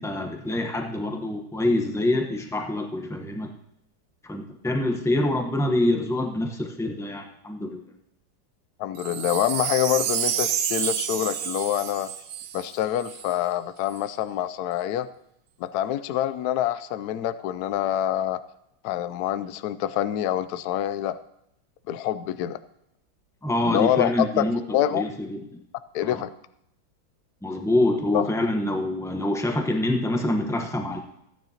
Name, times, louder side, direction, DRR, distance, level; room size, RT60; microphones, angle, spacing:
voice 1, 0.0-3.5 4.2-7.9 23.4-24.6 24.9-25.4 26.0-26.2 27.4-31.0, left 1 dB, 5° left, 2 dB, 0.3 m, -26 dB
voice 2, 8.8-12.1 12.5-15.1 15.6-18.4 18.8-21.2 21.9-22.6 23.6-25.0 25.9-26.3 28.1-28.2, left 11 dB, 75° left, 13 dB, 0.8 m, -26 dB
Wind chime, 9.0-13.3 13.9-14.0, right 9 dB, 70° right, 1.3 m, -29 dB
15.5 x 9.5 x 2.9 m, 0.80 s
omnidirectional pair, 2.2 m